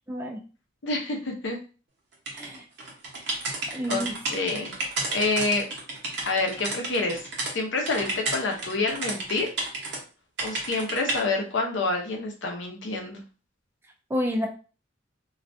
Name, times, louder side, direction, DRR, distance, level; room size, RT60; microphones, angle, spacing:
voice 1, 0.1-0.4 2.3-2.6 3.7-4.1 14.1-14.5, equal, 10° right, 3 dB, 0.3 m, -29 dB
voice 2, 0.8-1.6 3.9-4.0 4.3-4.8 5.1-5.6 6.3-7.3 7.5-9.5 10.4-13.2, left 3 dB, 75° left, 1 dB, 0.6 m, -27 dB
sound 1, 2.3-7.5 7.9-10.0 10.4-11.2, right 2 dB, 60° right, 0.7 m, -32 dB
2.4 x 2.1 x 2.6 m, 0.36 s
head